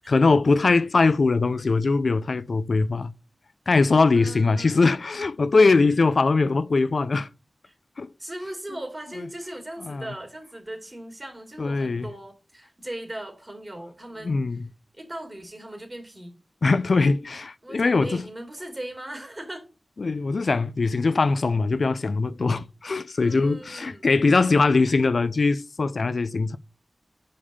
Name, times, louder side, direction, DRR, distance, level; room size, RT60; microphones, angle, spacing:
voice 1, 0.1-3.1 3.7-7.3 8.0-8.1 9.9-10.1 11.6-12.0 14.2-14.6 16.6-18.2 20.0-26.6, left 3 dB, 75° left, 0.4 m, -21 dB
voice 2, 4.1-4.8 7.7-7.8 8.2-14.4 14.9-16.4 17.6-19.7 23.2-24.1, right 1 dB, 30° right, 2.7 m, -38 dB
5.5 x 5.1 x 6.6 m
cardioid pair, 45°, 0 cm